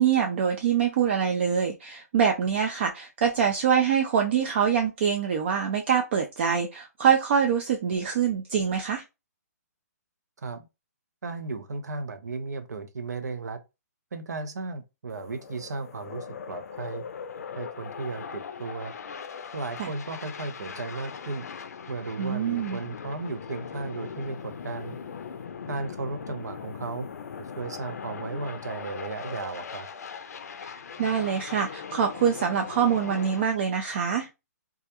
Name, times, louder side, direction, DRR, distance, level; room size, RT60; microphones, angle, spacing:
voice 1, 0.0-9.0 19.8-19.9 22.2-22.8 30.7-34.3, right 7 dB, 45° right, 0.4 m, -25 dB
voice 2, 11.2-13.6 14.1-17.1 17.5-18.9 19.5-21.5 21.9-25.0 25.7-27.1 27.4-29.9, right 3 dB, 85° right, 0.6 m, -35 dB
sound 1, 15.1-33.4, left 6 dB, 70° left, 0.4 m, -40 dB
2.3 x 2.1 x 2.8 m
hypercardioid pair, 150°, 9 cm